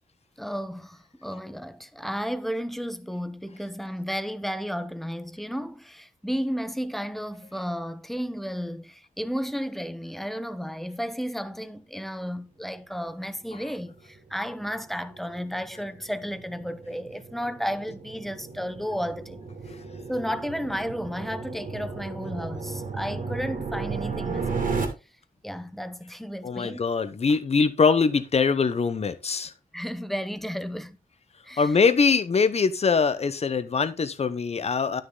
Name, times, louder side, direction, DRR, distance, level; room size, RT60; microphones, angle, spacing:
voice 1, 0.4-19.4 20.1-24.7 25.4-26.8 29.7-31.0 31.4-31.7, equal, ahead, 0.8 m, -33 dB
sound 1, 13.7-24.9, right 4 dB, 65° right, 2.8 m, -35 dB
voice 2, 26.4-29.5 31.6-35.0, left 5 dB, 45° left, 0.9 m, -23 dB
12.0 x 6.5 x 3.8 m
wide cardioid pair, 165°, 15 cm